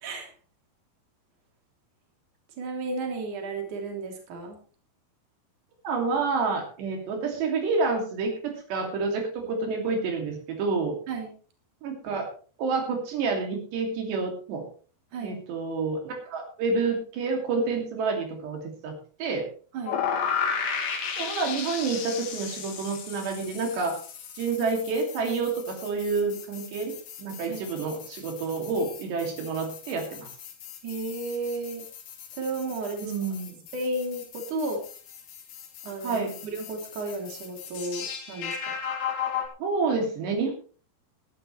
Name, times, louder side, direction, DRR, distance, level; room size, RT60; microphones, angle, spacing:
voice 1, 2.6-4.6 11.1-11.3 15.1-15.4 19.7-20.0 27.5-27.6 30.8-31.8 32.4-33.1 33.7-34.8 35.8-38.5, right 2 dB, 50° right, 1 dB, 4.4 m, -33 dB
voice 2, 5.8-11.0 11.8-12.3 12.6-14.6 15.2-19.5 21.2-24.0 24.3-26.9 27.2-30.3 33.0-33.6 36.0-36.4 39.6-40.5, right 4 dB, 75° right, 2 dB, 4.9 m, -28 dB
sound 1, 19.9-39.5, left 7 dB, 80° left, 4.5 m, -36 dB
18.0 x 12.5 x 3.3 m, 0.40 s
omnidirectional pair, 4.9 m